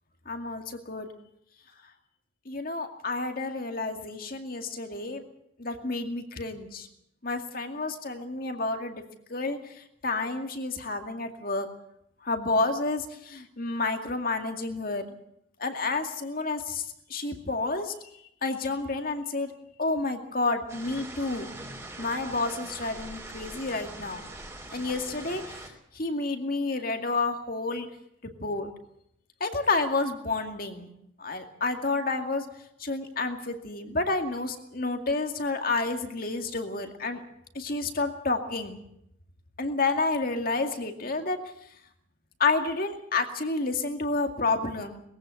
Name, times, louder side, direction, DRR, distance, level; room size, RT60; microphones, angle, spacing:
voice 1, 0.3-1.1 2.5-5.2 5.6-6.9 7.2-9.0 9.3-9.7 10.0-11.7 12.2-15.1 15.6-16.8 17.1-17.9 18.4-19.5 19.8-21.5 22.0-24.3 24.7-27.9 28.2-28.7 29.4-30.9 31.2-32.5 32.8-37.2 37.5-38.8 39.6-41.4 42.4-45.0, left 3 dB, 50° left, 5 dB, 2.3 m, -30 dB
sound 1, 20.7-25.7, right 2 dB, 15° right, 3.1 m, -42 dB
21.5 x 15.5 x 7.9 m, 0.75 s
head